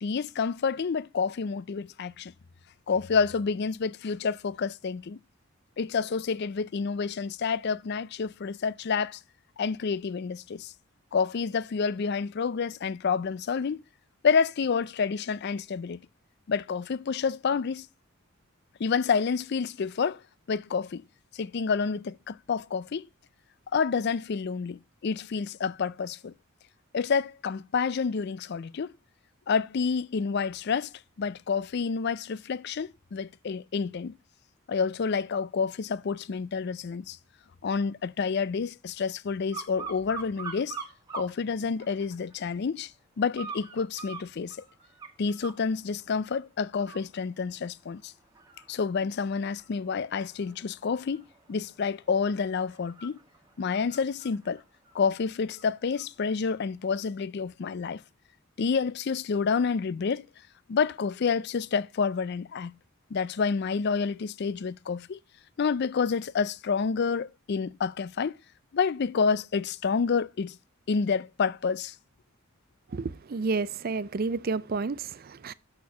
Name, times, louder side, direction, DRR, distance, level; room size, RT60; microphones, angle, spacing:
voice 1, 0.0-2.3 2.9-5.2 5.8-9.2 9.6-10.7 11.1-13.8 14.2-16.0 16.5-17.9 18.8-20.2 20.5-21.0 21.3-23.1 23.7-26.3 26.9-28.9 29.5-30.9 31.2-34.1 34.7-37.2 37.6-40.8 41.1-42.9 43.2-44.6 45.2-48.1 48.7-53.2 53.6-54.6 54.9-58.0 58.6-60.3 60.7-62.7 63.1-65.2 65.6-68.4 68.7-70.6 70.9-71.9, left 5 dB, 50° left, 0.4 m, -29 dB
sound 1, 39.5-41.3 41.8-42.4 43.3-45.6 46.1-46.4 46.7-56.1 56.5-56.6, right 5 dB, 20° right, 1.5 m, -44 dB
voice 2, 72.9-75.5, right 4 dB, 45° right, 0.4 m, -30 dB
6.6 x 6.4 x 6.8 m
head